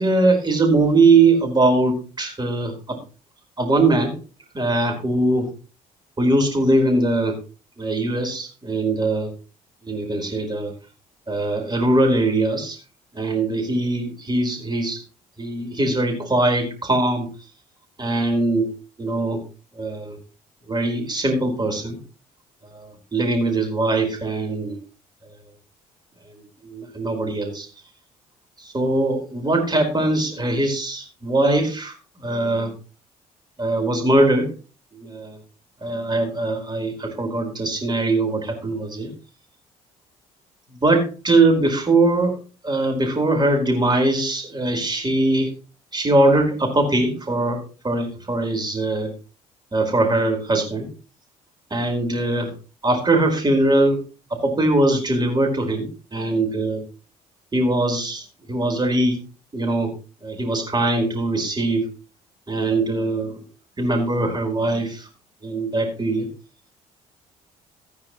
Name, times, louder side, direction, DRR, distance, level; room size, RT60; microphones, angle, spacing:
voice 1, 0.0-3.0 3.6-4.2 4.5-5.5 6.2-7.4 7.8-9.3 9.8-10.7 11.3-12.8 13.1-15.0 15.4-17.3 18.0-18.7 19.0-19.4 19.7-20.2 20.7-22.0 22.7-24.8 26.6-27.7 28.6-31.9 32.2-32.7 33.6-34.5 34.9-35.4 35.8-39.1 40.8-42.4 42.6-45.5 45.9-49.1 49.7-50.9 51.7-52.5 52.8-54.0 54.3-56.8 57.5-59.2 59.5-59.9 60.2-61.9 62.5-63.4 63.8-65.1 65.4-66.3, right 2 dB, 20° right, 3 dB, 4.4 m, -21 dB
15.0 x 9.6 x 3.1 m, 0.34 s
figure-of-eight pair, 50°, 19 cm